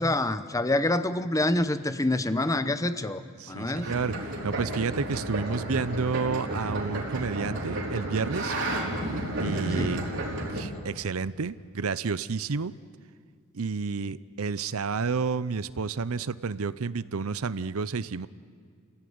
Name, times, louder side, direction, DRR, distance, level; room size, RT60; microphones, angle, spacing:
voice 1, 0.0-3.2 3.5-3.9 9.8-9.9, left 2 dB, 15° left, 12 dB, 0.8 m, -26 dB
voice 2, 3.4-4.2 4.4-8.6 9.4-10.0 10.5-12.7 13.5-18.3, right 5 dB, 75° right, 16 dB, 0.6 m, -30 dB
sound 1, 3.8-10.6, right 1 dB, 55° right, 4.2 m, -32 dB
29.5 x 16.5 x 9.5 m, 2.1 s
head